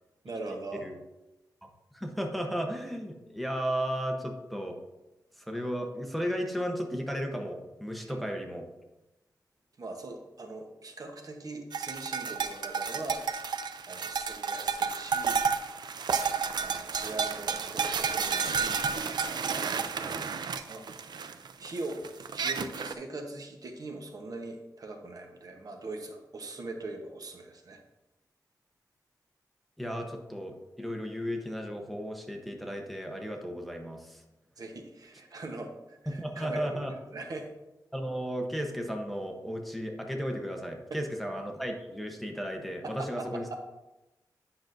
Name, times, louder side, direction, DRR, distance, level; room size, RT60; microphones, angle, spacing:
voice 1, 0.2-0.9 8.0-8.3 9.8-13.2 13.9-15.4 16.6-18.9 19.5-20.2 20.7-20.9 21.6-22.0 22.3-27.8 34.6-37.5 40.9-41.0 42.8-43.2 43.5-43.6, right 2 dB, 60° right, 4 dB, 1.0 m, -41 dB
voice 2, 1.9-4.8 5.4-8.7 20.0-20.2 29.8-34.2 36.1-36.9 37.9-43.6, equal, ahead, 2 dB, 0.9 m, -34 dB
sound 1, 11.7-22.9, right 6 dB, 80° right, 0.4 m, -31 dB
9.7 x 5.9 x 2.6 m, 0.99 s
wide cardioid pair, 125°, 7 cm